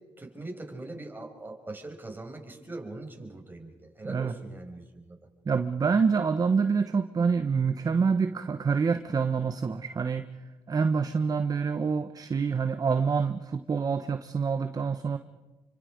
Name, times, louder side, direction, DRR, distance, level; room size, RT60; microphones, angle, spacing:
voice 1, 0.2-5.2, right 2 dB, 20° right, 3 dB, 5.9 m, -41 dB
voice 2, 5.5-10.2 10.7-15.2, right 5 dB, 40° right, 9 dB, 1.1 m, -26 dB
29.0 x 25.0 x 5.2 m, 1.2 s
supercardioid pair, 60°, 10 cm